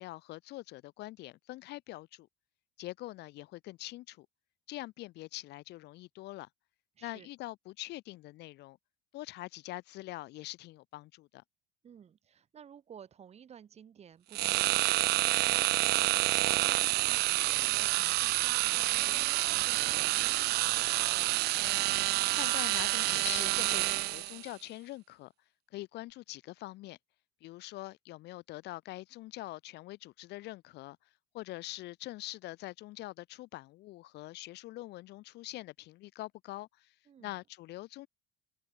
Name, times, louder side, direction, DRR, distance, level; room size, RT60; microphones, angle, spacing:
voice 1, 0.0-2.3 2.8-4.3 4.7-6.5 7.0-8.8 9.1-11.4 21.7-25.3 25.7-27.0 27.4-31.0 31.3-36.9 37.2-38.1, left 18 dB, 55° left, 0.9 m, -44 dB
voice 2, 7.0-7.3 11.8-20.9 37.1-37.4, right 8 dB, 30° right, 4.1 m, -54 dB
sound 1, 14.3-24.4, right 19 dB, 55° right, 0.5 m, -28 dB
cardioid pair, 140°, 20 cm